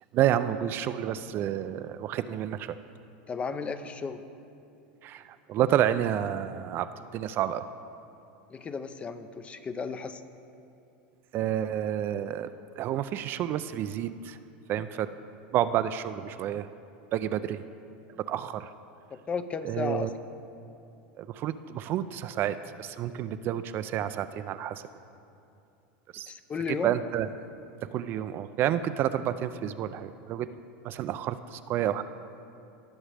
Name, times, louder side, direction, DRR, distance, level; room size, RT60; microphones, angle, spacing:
voice 1, 0.1-2.8 5.0-6.9 7.1-7.6 11.3-12.5 12.8-14.4 14.7-15.1 15.5-16.7 17.1-17.6 18.3-18.7 19.6-20.1 21.2-24.8 26.1-26.3 26.8-27.3 27.9-30.5 30.8-32.0, right 11 dB, 40° right, 12 dB, 0.3 m, -29 dB
voice 2, 3.3-4.2 8.5-10.2 19.1-20.1 26.3-27.0, left 5 dB, 20° left, 11 dB, 0.5 m, -34 dB
18.5 x 6.2 x 3.4 m, 2.7 s
supercardioid pair, 120°, 5 cm